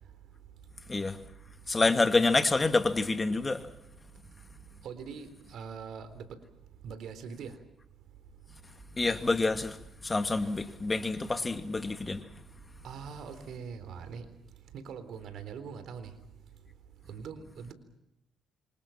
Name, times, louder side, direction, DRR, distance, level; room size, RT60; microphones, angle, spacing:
voice 1, 1.7-3.6 9.0-9.8 10.0-12.2, left 3 dB, 25° left, 2.4 m, -27 dB
voice 2, 4.8-6.3 6.8-7.5 12.8-14.3 14.7-16.1 17.1-17.7, right 6 dB, 75° right, 3.8 m, -42 dB
27.5 x 26.0 x 5.9 m
cardioid pair, 90°, 0 cm